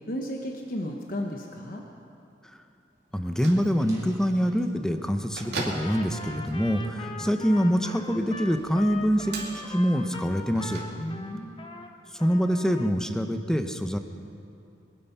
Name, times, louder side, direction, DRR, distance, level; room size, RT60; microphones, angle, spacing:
voice 1, 0.1-1.8 11.0-11.6, equal, 50° left, 1 dB, 1.1 m, -34 dB
sound 1, 3.0-3.2 3.7-5.3 5.8-7.1 7.7-7.9 8.6-10.6, right 1 dB, 20° right, 3.3 m, -53 dB
voice 2, 3.1-10.8 12.1-14.0, equal, 5° left, 7 dB, 0.7 m, -25 dB
Bell / Microwave oven, 3.1-11.4, right 3 dB, 60° right, 2.7 m, -42 dB
Trumpet, 5.7-11.9 12.2-13.0, left 3 dB, 30° left, 1.0 m, -41 dB
24.0 x 9.4 x 5.6 m, 2.6 s
head